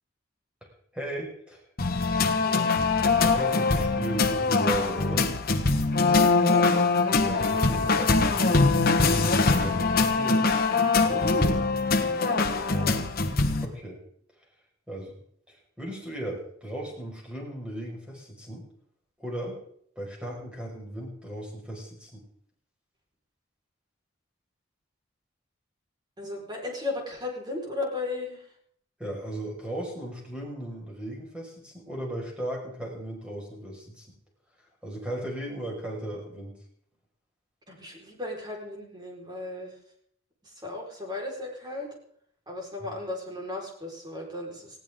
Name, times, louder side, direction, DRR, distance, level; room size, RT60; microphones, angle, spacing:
voice 1, 0.9-1.6 3.2-5.3 7.1-8.1 8.4-10.5 10.9-11.3 13.6-14.0 14.9-15.1 15.5-18.7 19.2-19.6 20.0-22.2 29.0-34.1 34.8-36.6 42.8-42.9, right 1 dB, 5° right, -2 dB, 5.5 m, -36 dB
sound 1, 1.8-13.7, left 3 dB, 50° left, 1.4 m, -23 dB
voice 2, 2.2-2.7 6.1-6.6 11.2-13.0 26.2-28.5 37.7-39.8 40.4-41.9 42.5-44.8, left 2 dB, 20° right, 0 dB, 4.7 m, -36 dB
19.0 x 16.5 x 3.8 m, 0.63 s
head